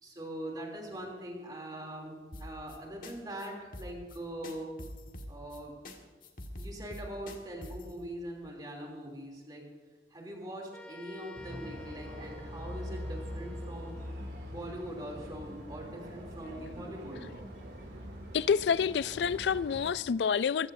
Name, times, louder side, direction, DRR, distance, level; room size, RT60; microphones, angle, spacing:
voice 1, 0.0-4.7 5.3-5.8 6.5-9.7 10.1-14.1 14.5-17.2, right 1 dB, 25° right, 3.0 m, -42 dB
sound 1, 2.3-2.8 3.0-3.1 3.4-3.5 3.7-4.2 4.4-5.6 5.9-6.0 6.2-7.9, left 1 dB, 50° left, 1.7 m, -44 dB
sound 2, 10.7-14.4, left 2 dB, 5° left, 0.6 m, -52 dB
sound 3, 11.3-19.9, equal, 85° right, 2.7 m, -43 dB
voice 2, 18.3-20.7, left 6 dB, 80° left, 0.3 m, -28 dB
23.5 x 15.5 x 2.7 m
head